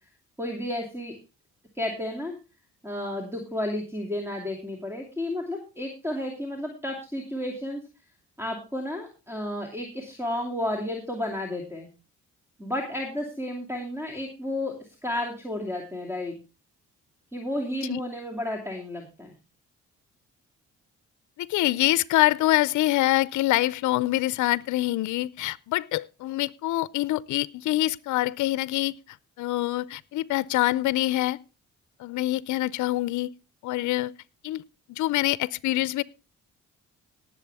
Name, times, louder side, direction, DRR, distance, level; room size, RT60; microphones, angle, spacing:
voice 1, 0.4-1.1 1.7-2.3 2.8-7.8 8.4-11.9 12.6-14.7 15.0-16.3 17.3-19.3, left 1 dB, 10° right, 2 dB, 2.7 m, -32 dB
voice 2, 21.4-28.9 29.4-31.4 32.0-33.3 33.6-34.1 34.4-34.6 34.9-36.0, left 16 dB, 75° left, 19 dB, 0.5 m, -25 dB
18.5 x 7.6 x 3.5 m, 0.31 s
cardioid pair, 90°, 30 cm